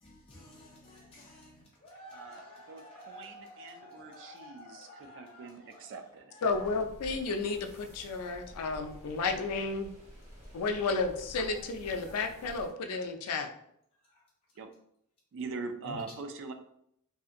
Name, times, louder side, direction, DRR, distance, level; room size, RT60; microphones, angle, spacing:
voice 1, 0.0-5.9 6.3-6.6 8.0-9.4 12.0-12.2 14.1-14.2 15.8-16.0, left 1 dB, 25° left, -5 dB, 0.5 m, -52 dB
voice 2, 2.1-6.4 14.6-14.7 15.3-16.5, right 4 dB, 60° right, 7 dB, 0.3 m, -43 dB
voice 3, 6.4-9.9 10.5-13.5, left 4 dB, 85° left, 6 dB, 0.4 m, -32 dB
sound 1, 6.5-12.7, equal, 30° right, 1.1 m, -50 dB
2.7 x 2.4 x 2.5 m, 0.72 s
head